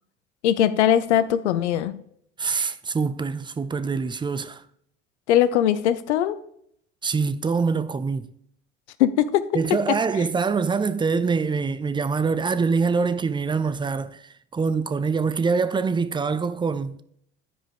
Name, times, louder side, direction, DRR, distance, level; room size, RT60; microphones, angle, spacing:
voice 1, 0.4-1.9 5.3-6.4 9.0-9.8, left 10 dB, 80° left, 0.6 m, -20 dB
voice 2, 2.4-4.6 7.0-8.3 9.5-17.0, right 5 dB, 15° right, 0.5 m, -24 dB
11.5 x 5.0 x 3.5 m
hypercardioid pair, 65°, 33 cm